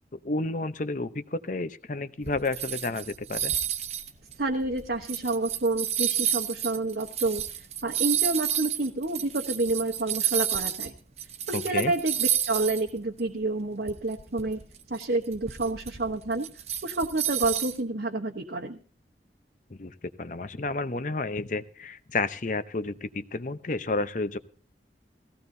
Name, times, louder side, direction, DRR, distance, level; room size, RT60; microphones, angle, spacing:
voice 1, 0.1-3.5 11.5-11.9 19.7-24.4, left 3 dB, 45° left, 12 dB, 0.8 m, -31 dB
sound 1, 2.2-10.9 11.2-12.9 13.2-13.3 13.9-17.8, right 9 dB, 35° right, 0.9 m, -31 dB
voice 2, 4.4-10.9 11.5-14.6 14.9-16.5 16.8-18.8, right 2 dB, 65° right, 2 dB, 1.1 m, -29 dB
17.5 x 16.0 x 2.7 m, 0.41 s
head